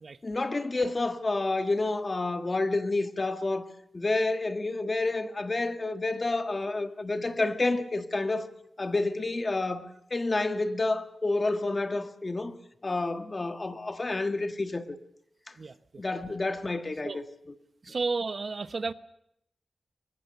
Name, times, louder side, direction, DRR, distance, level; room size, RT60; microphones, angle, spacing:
voice 1, 0.2-8.5 8.8-12.5 12.8-15.0 16.0-17.2, left 2 dB, 35° left, 1.6 m, -29 dB
voice 2, 17.9-18.9, right 4 dB, 55° right, 0.9 m, -32 dB
23.5 x 21.5 x 6.8 m
wide cardioid pair, 95°, 0 cm